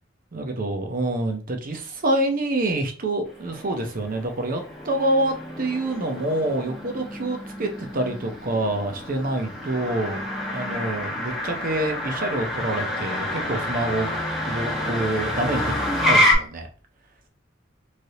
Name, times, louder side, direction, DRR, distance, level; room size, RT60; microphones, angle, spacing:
voice 1, 0.3-10.2 10.5-14.2 14.5-15.7 16.1-16.7, right 1 dB, 45° right, 4 dB, 0.7 m, -26 dB
Motor vehicle (road), 3.3-16.3, left 1 dB, ahead, 0.9 m, -28 dB
3.2 x 2.6 x 2.7 m, 0.38 s
head